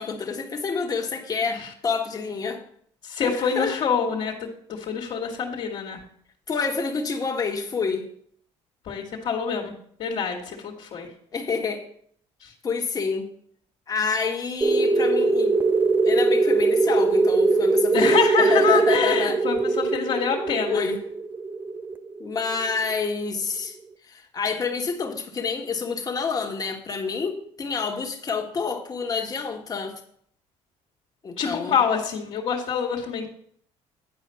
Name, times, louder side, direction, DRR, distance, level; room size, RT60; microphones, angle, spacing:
voice 1, 0.0-2.6 3.2-3.8 6.5-8.1 11.3-11.8 12.6-13.3 13.9-15.5 16.0-19.4 20.7-21.0 22.2-23.8 24.1-29.9 31.2-31.8, left 5 dB, 30° left, 3 dB, 1.5 m, -28 dB
voice 2, 3.0-6.0 8.9-9.7 10.0-11.1 12.4-12.5 17.9-20.9 31.4-33.3, left 6 dB, 55° left, -4 dB, 1.7 m, -26 dB
sound 1, 14.6-22.9, right 3 dB, 15° right, 0.6 m, -21 dB
10.0 x 4.9 x 5.7 m, 0.64 s
cardioid pair, 110°, 12 cm